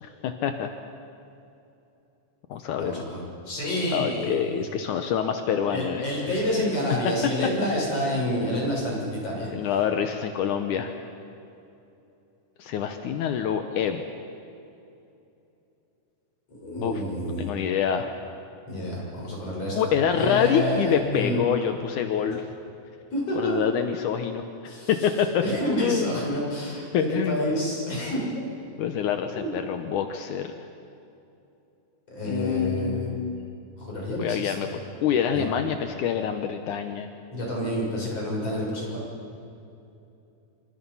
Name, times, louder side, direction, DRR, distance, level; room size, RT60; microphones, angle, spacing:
voice 1, 0.0-0.7 2.5-3.0 3.9-6.0 9.5-10.9 12.6-14.0 16.8-18.1 19.7-22.5 23.3-25.4 25.8-26.1 26.9-27.4 28.8-30.5 32.2-33.6 34.2-34.7 35.0-37.1, left 8 dB, 75° left, 6 dB, 2.4 m, -26 dB
voice 2, 2.8-4.6 5.7-9.5 16.5-17.6 18.7-21.4 23.1-23.6 24.7-24.9 25.4-28.2 29.3-29.5 32.1-33.1 33.8-34.7 35.3-35.5 37.3-39.0, equal, 50° left, -3 dB, 8.0 m, -28 dB
26.5 x 26.0 x 5.6 m, 2.8 s
omnidirectional pair, 3.7 m